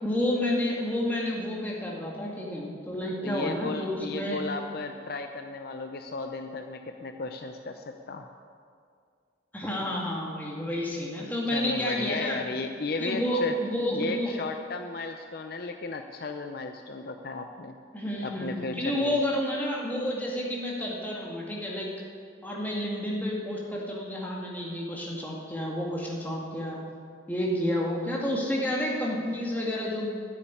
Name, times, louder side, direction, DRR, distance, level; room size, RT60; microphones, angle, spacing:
voice 1, 0.0-4.4 9.5-12.4 13.0-14.3 17.9-21.9 22.4-26.8 27.3-30.1, left 1 dB, 10° left, -3 dB, 2.1 m, -30 dB
voice 2, 3.2-8.3 11.5-13.6 13.9-17.8 18.2-19.3, left 3 dB, 50° left, 6 dB, 0.6 m, -35 dB
10.0 x 8.6 x 9.8 m, 2.2 s
head